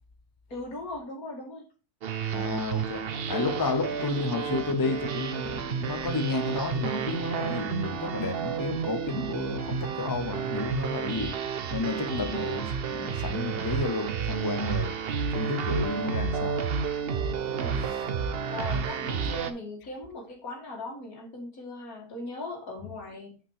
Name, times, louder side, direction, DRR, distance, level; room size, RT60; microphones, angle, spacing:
voice 1, 0.5-1.6 17.5-17.9 18.5-23.4, left 2 dB, 70° left, 2.5 m, -39 dB
sound 1, 2.0-19.5, right 6 dB, 50° right, 0.8 m, -31 dB
voice 2, 2.3-11.3 11.7-14.9 15.3-16.6 17.8-18.1 18.6-18.9, left 3 dB, 25° left, 0.5 m, -31 dB
5.9 x 5.1 x 4.7 m
omnidirectional pair, 1.6 m